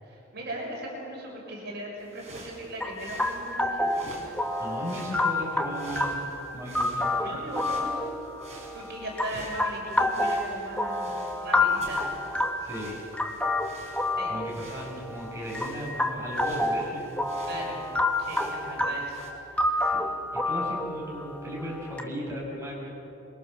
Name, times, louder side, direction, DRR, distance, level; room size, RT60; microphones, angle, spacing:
voice 1, 0.0-3.9 7.2-8.1 8.7-12.0 14.2-14.3 17.5-17.8 18.2-19.2 19.5-19.9, right 1 dB, 55° right, -2 dB, 6.6 m, -38 dB
sound 1, 2.0-19.3, right 2 dB, 35° right, 5.6 m, -48 dB
sound 2, 2.8-22.0, left 2 dB, 5° left, 1.5 m, -29 dB
voice 2, 4.6-7.4 12.6-13.0 14.3-17.1 19.8-22.9, equal, 15° right, -4 dB, 7.0 m, -37 dB
28.0 x 23.0 x 6.8 m, 2.9 s
head